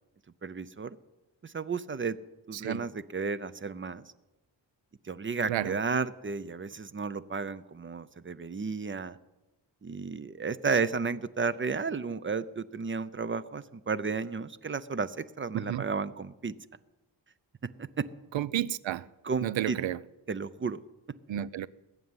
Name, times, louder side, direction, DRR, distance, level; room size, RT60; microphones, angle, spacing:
voice 1, 0.4-1.0 1.4-2.2 2.5-4.1 5.0-9.2 9.8-16.5 17.6-18.1 19.2-19.8 20.3-20.8 21.1-21.2, right 5 dB, 30° right, 0.5 m, -33 dB
voice 2, 15.5-15.9 18.3-19.1 19.4-20.0 21.3-21.7, right 12 dB, 85° right, 0.6 m, -31 dB
20.0 x 7.5 x 9.6 m
wide cardioid pair, 160°, 44 cm